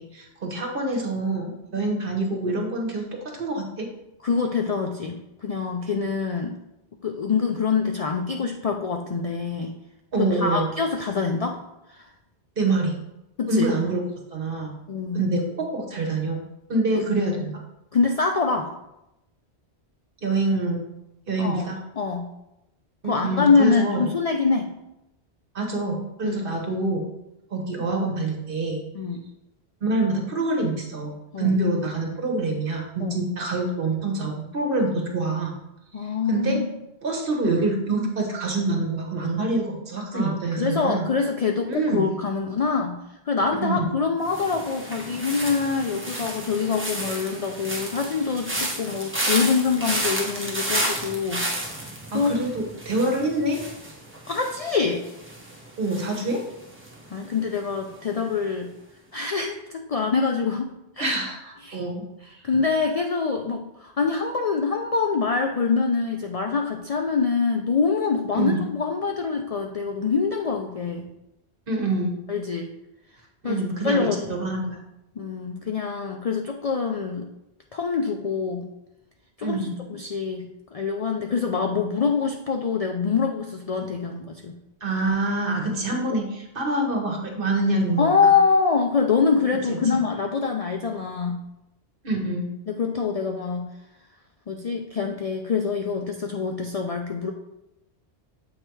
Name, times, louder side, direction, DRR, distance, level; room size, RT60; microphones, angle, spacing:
voice 1, 0.0-3.0 3.3-3.9 10.1-10.7 12.6-13.0 13.5-14.0 14.3-14.7 15.1-16.4 16.7-17.6 20.2-20.8 21.3-21.8 23.0-24.1 25.5-27.0 27.5-28.8 29.8-35.6 36.3-36.6 37.0-41.1 41.7-42.2 43.5-44.0 52.1-53.6 55.8-56.4 61.0-62.1 68.3-68.6 71.7-72.2 73.4-74.8 79.4-79.8 84.8-88.3 89.7-89.8 92.0-92.5, right 2 dB, 55° right, 1 dB, 1.3 m, -26 dB
voice 2, 4.2-6.6 7.0-9.7 10.2-11.6 11.9-12.0 13.4-13.7 14.9-15.2 17.9-18.7 21.4-21.7 22.0-22.3 23.0-24.7 26.2-26.4 28.9-29.2 31.3-31.6 33.0-33.2 35.9-36.7 40.1-43.0 43.3-51.6 52.1-52.4 54.3-55.0 57.1-58.7 59.1-61.2 61.6-61.8 62.4-71.1 72.3-72.7 73.4-74.3 75.2-77.3 77.7-78.7 79.4-79.6 79.9-84.6 88.0-91.4 92.7-93.7 94.5-97.3, left 5 dB, 55° left, 3 dB, 0.4 m, -25 dB
sound 1, 44.3-57.3 57.6-58.0, right 1 dB, 10° right, 1.0 m, -32 dB
7.5 x 3.3 x 4.5 m, 0.89 s
omnidirectional pair, 1.1 m